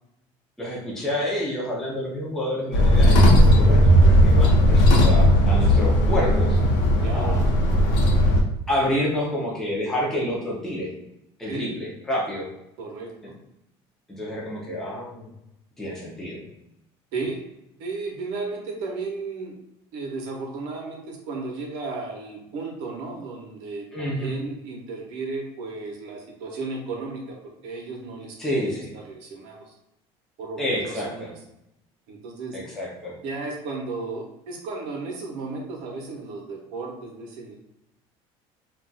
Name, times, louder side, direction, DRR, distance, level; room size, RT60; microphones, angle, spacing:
voice 1, 0.6-6.6 7.1-7.4 8.7-10.9 11.4-12.5 13.2-13.3 14.1-15.3 15.8-16.5 23.9-24.4 28.4-28.9 30.6-31.3 32.5-33.2, equal, 5° left, -5 dB, 0.5 m, -28 dB
sound 1, 2.7-8.4, equal, 85° left, 0.7 m, -16 dB
voice 2, 7.0-7.4 11.5-11.7 12.8-13.4 17.1-17.4 17.8-19.6 19.9-28.4 28.6-29.7 30.4-31.3 32.1-32.6 33.2-37.5, right 3 dB, 70° right, 0 dB, 0.7 m, -34 dB
2.3 x 2.3 x 3.9 m, 0.85 s
cardioid pair, 175°, 12 cm